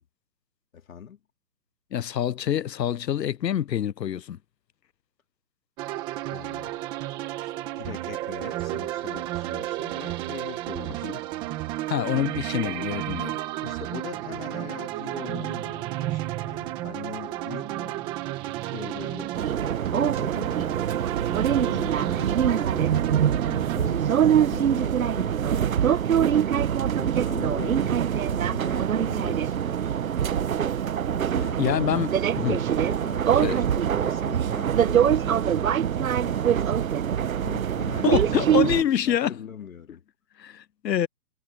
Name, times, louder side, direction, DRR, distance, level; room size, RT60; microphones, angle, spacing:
voice 1, 0.7-1.2 6.3-6.8 7.4-11.2 12.1-12.2 13.6-18.1 18.6-20.7 21.5-23.2 23.7-26.5 27.0-30.0 31.1-32.0 32.7-36.8 37.4-40.0, left 7 dB, 55° left, 3.0 m, -41 dB
voice 2, 1.9-4.4 11.0-11.1 11.9-13.4 31.6-32.8 33.3-33.6 38.0-39.4 40.4-41.1, left 10 dB, 85° left, 0.8 m, -26 dB
sound 1, 5.8-23.8, right 15 dB, 10° right, 1.2 m, -32 dB
sound 2, 19.3-38.8, right 9 dB, 55° right, 1.0 m, -24 dB
hypercardioid pair, 165°, 48 cm